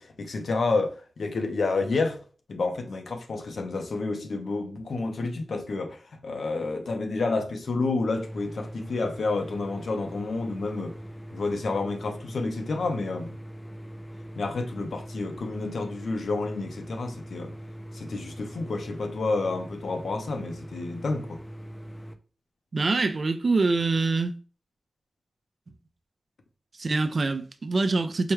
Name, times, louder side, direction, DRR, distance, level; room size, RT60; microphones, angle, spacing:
voice 1, 0.0-2.2 2.5-6.0 6.2-10.9 11.3-13.3 14.4-17.5 18.0-21.4, left 3 dB, 80° left, 0.6 m, -29 dB
sound 1, 8.2-22.1, equal, 10° left, 0.4 m, -41 dB
voice 2, 22.7-24.3 26.8-28.3, right 3 dB, 55° right, 0.4 m, -24 dB
4.7 x 2.2 x 3.1 m
wide cardioid pair, 115°, 0 cm